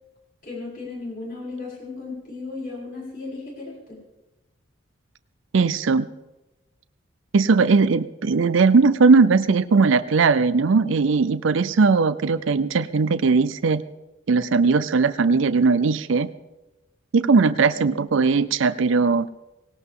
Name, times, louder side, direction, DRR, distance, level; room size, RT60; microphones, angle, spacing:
voice 1, 0.4-4.0 17.5-17.9, left 3 dB, 45° left, -4 dB, 7.8 m, -35 dB
voice 2, 5.5-6.1 7.3-13.8 14.3-16.3 17.1-19.3, right 4 dB, 70° right, 14 dB, 0.5 m, -19 dB
19.0 x 18.0 x 3.8 m, 1.0 s
head